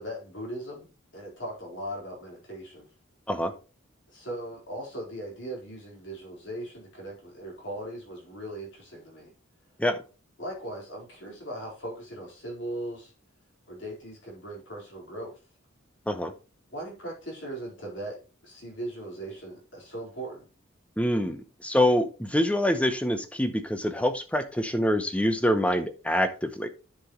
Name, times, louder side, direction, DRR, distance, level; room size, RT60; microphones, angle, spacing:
voice 1, 0.0-2.9 4.1-9.3 10.4-13.1 13.7-15.4 16.7-20.5, right 1 dB, 60° left, -2 dB, 4.0 m, -39 dB
voice 2, 21.0-26.7, left 1 dB, 5° left, 9 dB, 0.7 m, -25 dB
10.0 x 5.9 x 3.1 m, 0.33 s
head